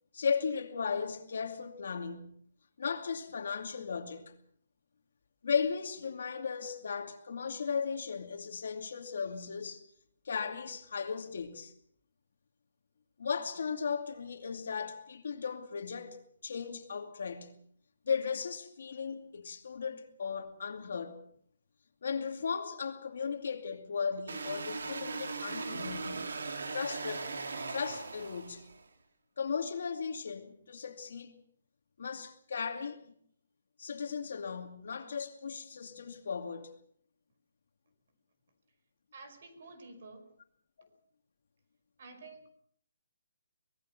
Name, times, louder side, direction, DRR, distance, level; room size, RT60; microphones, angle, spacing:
voice 1, 0.1-2.3 2.8-4.3 5.4-9.8 10.2-11.7 13.2-16.2 16.4-17.6 18.1-21.2 22.0-26.3 26.7-27.3 27.7-28.7 29.4-31.3 32.0-33.0 33.8-36.7 40.8-40.9, left 6 dB, 60° left, 2.4 m, -36 dB
sound 1, 24.3-28.8, right 4 dB, 85° right, 2.8 m, -39 dB
voice 2, 39.1-40.3 42.0-42.4, right 3 dB, 45° right, 5.2 m, -50 dB
24.0 x 20.5 x 6.0 m
hypercardioid pair, 175°, 0 cm